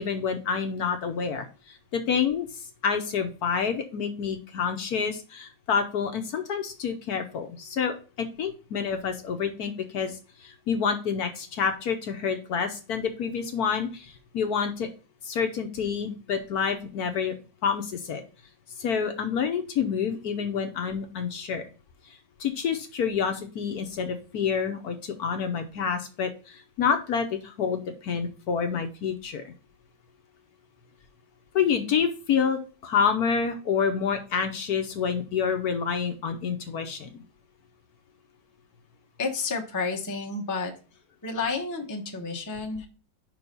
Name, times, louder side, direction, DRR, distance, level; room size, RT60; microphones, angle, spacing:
voice 1, 0.0-14.9 15.2-17.3 17.6-18.2 18.8-21.7 22.4-29.5 31.5-37.2, left 6 dB, 65° left, 6 dB, 1.2 m, -28 dB
voice 2, 39.2-40.7 41.2-42.9, left 4 dB, 15° left, 2 dB, 0.7 m, -30 dB
5.3 x 4.8 x 5.3 m, 0.34 s
omnidirectional pair, 2.0 m